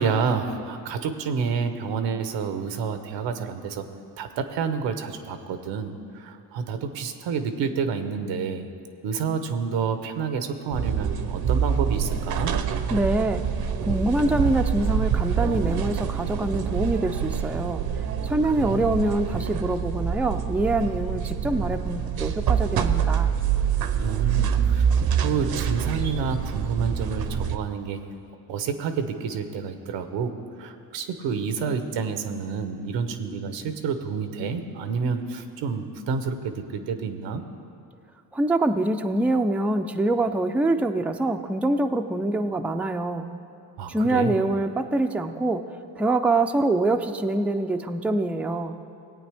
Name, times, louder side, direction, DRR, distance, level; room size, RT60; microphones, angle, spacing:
voice 1, 0.0-3.8 4.2-8.7 9.0-12.5 18.5-18.9 24.0-28.0 28.5-37.4 43.8-44.5, right 5 dB, 85° right, 8 dB, 0.9 m, -29 dB
sound 1, 10.7-27.6, right 7 dB, 55° right, 0.7 m, -26 dB
voice 2, 12.9-13.4 13.8-17.8 18.2-23.3 38.3-43.3 43.9-45.6 46.0-48.7, right 2 dB, 5° right, 6 dB, 0.4 m, -25 dB
17.5 x 8.7 x 3.4 m, 2.5 s
cardioid pair, 75°, 43 cm